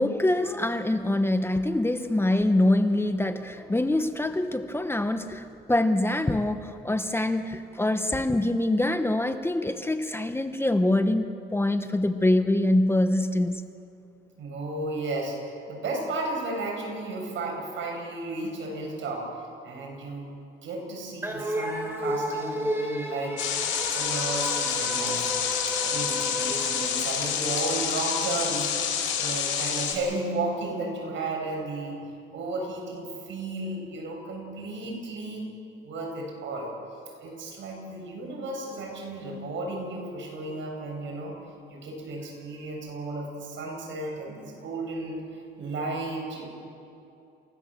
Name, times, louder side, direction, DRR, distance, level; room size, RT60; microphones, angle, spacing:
voice 1, 0.0-13.6, left 1 dB, 10° left, 8 dB, 1.1 m, -24 dB
voice 2, 14.4-20.3 20.6-23.5 23.9-25.3 25.8-28.7 29.2-32.0 32.3-35.5 35.8-36.7 37.2-41.4 41.7-45.2 45.6-46.5, right 2 dB, 70° right, 1 dB, 7.2 m, -33 dB
sound 1, 21.2-27.8, right 1 dB, 10° right, 4.3 m, -33 dB
sound 2, 23.4-29.9, left 8 dB, 90° left, 4.9 m, -28 dB
28.0 x 16.5 x 7.7 m, 2.7 s
cardioid pair, 90°, 20 cm